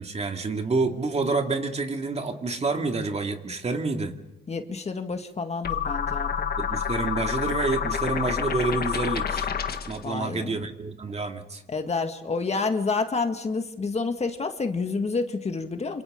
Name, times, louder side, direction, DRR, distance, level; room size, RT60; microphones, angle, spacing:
voice 1, 0.0-4.1 6.6-11.6, right 3 dB, 30° right, 4 dB, 2.3 m, -28 dB
voice 2, 4.5-6.5 10.0-10.7 11.7-16.0, left 4 dB, 35° left, 6 dB, 2.0 m, -29 dB
sound 1, 5.6-10.0, left 7 dB, 50° left, 1.6 m, -28 dB
27.5 x 27.0 x 3.9 m, 0.94 s
cardioid pair, 90°, 20 cm